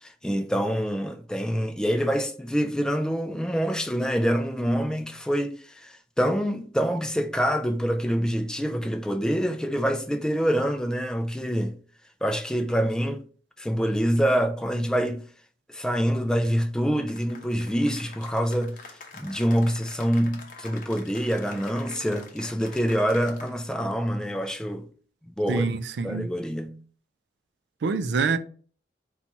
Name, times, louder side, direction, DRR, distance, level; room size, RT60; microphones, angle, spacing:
voice 1, 0.0-11.7 12.2-13.2 13.6-15.2 15.7-18.8 19.1-24.9 25.2-25.7 26.0-26.8, equal, 5° left, 0.4 m, -26 dB
Cheering / Applause, 17.1-23.8, left 4 dB, 50° left, 0.8 m, -46 dB
voice 2, 25.5-26.3 27.8-28.4, right 4 dB, 70° right, 0.4 m, -25 dB
4.2 x 2.3 x 4.1 m
head